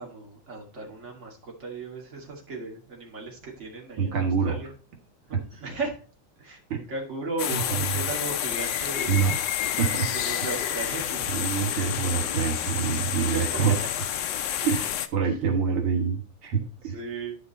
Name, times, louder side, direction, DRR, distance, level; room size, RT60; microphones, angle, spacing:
voice 1, 0.0-4.7 5.3-5.9 6.4-9.2 10.1-11.3 11.7-11.9 13.3-13.9 15.2-15.3 16.8-17.4, right 3 dB, 35° right, -1 dB, 2.5 m, -36 dB
voice 2, 4.0-4.6 5.3-5.4 6.7-6.8 7.5-8.0 9.1-9.4 9.8-10.1 11.3-13.8 14.6-17.0, right 6 dB, 85° right, 2 dB, 2.3 m, -26 dB
sound 1, 7.4-15.1, left 10 dB, 70° left, 1.3 m, -29 dB
11.0 x 5.1 x 4.2 m, 0.38 s
omnidirectional pair, 2.3 m